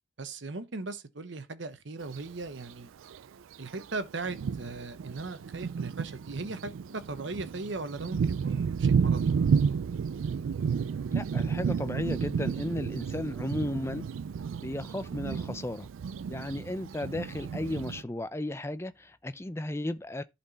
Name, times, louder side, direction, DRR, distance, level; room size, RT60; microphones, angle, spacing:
voice 1, 0.2-2.9 3.6-9.3, right 3 dB, 70° right, 1.0 m, -38 dB
Thunder, 2.0-2.2 3.1-3.2 3.8-3.9 4.3-18.0, right 6 dB, 85° right, 0.4 m, -31 dB
voice 2, 11.1-14.1 14.6-15.9 16.3-20.2, left 1 dB, 15° left, 0.4 m, -34 dB
11.0 x 4.4 x 4.1 m
head